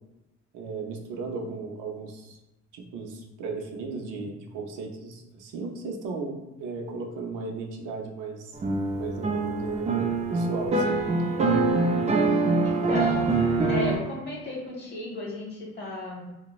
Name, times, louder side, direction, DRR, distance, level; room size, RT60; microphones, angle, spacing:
voice 1, 0.5-2.4 2.7-8.6 9.0-11.0, right 4 dB, 85° right, 1 dB, 0.6 m, -36 dB
sound 1, 8.6-14.0, right 3 dB, 25° right, 0.4 m, -24 dB
voice 2, 12.6-13.3 13.7-16.3, left 2 dB, 35° left, -3 dB, 1.2 m, -34 dB
3.0 x 2.1 x 2.3 m, 1.0 s
cardioid pair, 90°, 30 cm